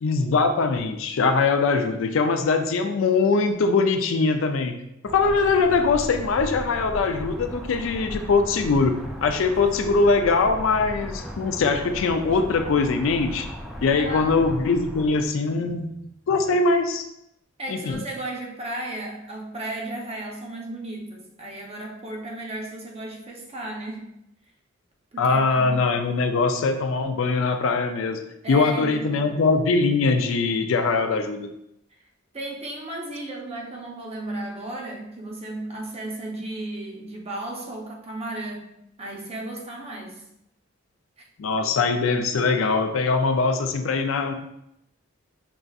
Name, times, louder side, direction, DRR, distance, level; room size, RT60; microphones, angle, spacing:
voice 1, 0.0-13.5 13.8-15.9 16.3-17.0 17.7-18.0 25.2-28.2 28.5-31.5 41.4-44.3, left 4 dB, 75° left, 7 dB, 0.4 m, -22 dB
sound 1, 5.0-15.3, equal, ahead, 0.4 m, -37 dB
voice 2, 14.0-14.3 17.6-24.1 25.1-25.8 28.4-29.3 32.3-38.7 39.0-40.3, right 1 dB, 30° right, 0 dB, 0.7 m, -34 dB
5.4 x 2.6 x 2.4 m, 0.80 s
head